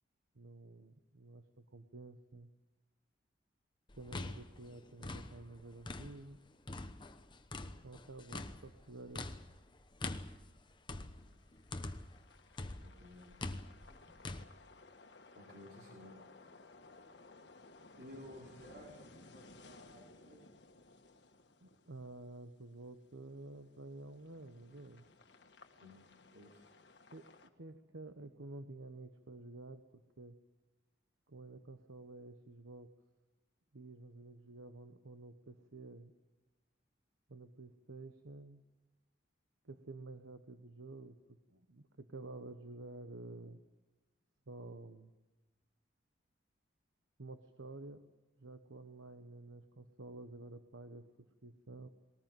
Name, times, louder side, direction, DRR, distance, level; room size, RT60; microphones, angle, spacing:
voice 1, 0.3-2.5 3.9-6.4 7.8-9.3 21.6-25.0 27.1-29.8 30.2-30.4 31.3-32.9 33.7-36.1 37.3-38.6 39.6-43.6 44.5-45.1 47.2-48.0 48.4-51.9, right 2 dB, 85° right, 9 dB, 1.2 m, -51 dB
sound 1, 3.9-6.3 6.7-12.2 12.6-14.4, left 2 dB, 25° left, 1.0 m, -44 dB
sound 2, 11.2-27.5, left 3 dB, 60° left, 1.6 m, -60 dB
voice 2, 12.8-13.3 15.3-16.2 18.0-20.4 25.8-26.7, left 1 dB, 55° right, -2 dB, 4.3 m, -55 dB
20.5 x 19.0 x 9.1 m, 1.1 s
head